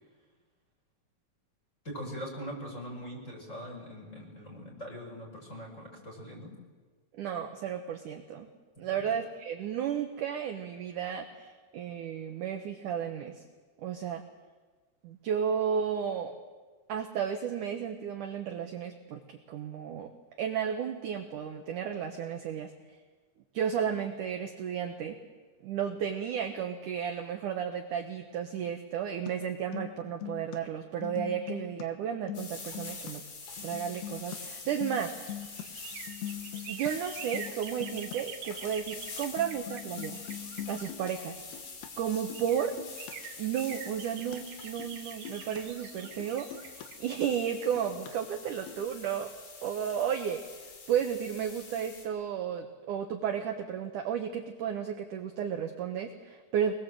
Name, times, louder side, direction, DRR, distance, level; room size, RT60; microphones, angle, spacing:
voice 1, 1.8-6.5 9.0-9.1, equal, 15° left, -1 dB, 6.2 m, -42 dB
voice 2, 7.1-8.5 8.8-13.4 13.8-14.2 15.0-16.3 16.9-19.2 19.5-20.1 20.4-22.7 23.5-25.2 25.6-33.2 33.6-35.1 36.7-40.2 40.7-41.4 42.0-42.8 43.4-49.3 49.6-56.7, right 8 dB, 70° right, 4 dB, 2.1 m, -33 dB
sound 1, 29.3-29.4 29.6-30.6 30.9-31.8 32.1-33.1 33.6-34.4 34.7-35.6 35.9-36.9 37.2-37.5 37.8-38.2 38.7-38.8 39.1-39.2 39.4-41.9 42.2-42.5 42.8-43.1 43.6-44.4 44.7-45.0 45.3-45.6 46.0-46.9 47.1-47.5 47.8-48.1 48.5-48.8, left 12 dB, 70° left, 3.2 m, -42 dB
sound 2, 32.3-52.1, left 4 dB, 55° left, 4.5 m, -46 dB
sound 3, 34.7-41.5 42.0-42.1 42.3-48.1 48.5-48.6, right 10 dB, 85° right, 3.3 m, -46 dB
25.0 x 20.5 x 7.7 m, 1.4 s
omnidirectional pair, 5.0 m